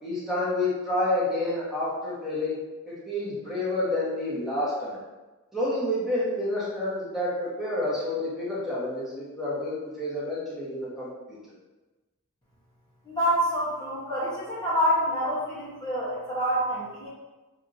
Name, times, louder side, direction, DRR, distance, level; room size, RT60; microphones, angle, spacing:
voice 1, 0.0-2.6 2.9-5.0 5.5-11.4, left 1 dB, ahead, -9 dB, 1.1 m, -29 dB
voice 2, 13.0-17.1, equal, 20° left, -9 dB, 1.0 m, -27 dB
6.1 x 2.7 x 2.6 m, 1.2 s
head